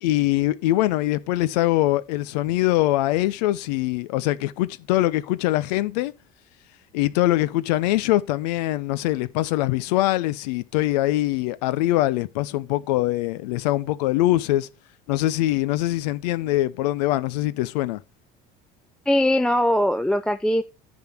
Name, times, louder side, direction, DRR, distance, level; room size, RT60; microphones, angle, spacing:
voice 1, 0.0-6.1 6.9-14.7 15.1-18.0, left 16 dB, 90° left, 0.7 m, -23 dB
voice 2, 19.1-20.6, left 1 dB, 5° left, 0.5 m, -20 dB
10.5 x 3.8 x 6.0 m
supercardioid pair, 100°, 20 cm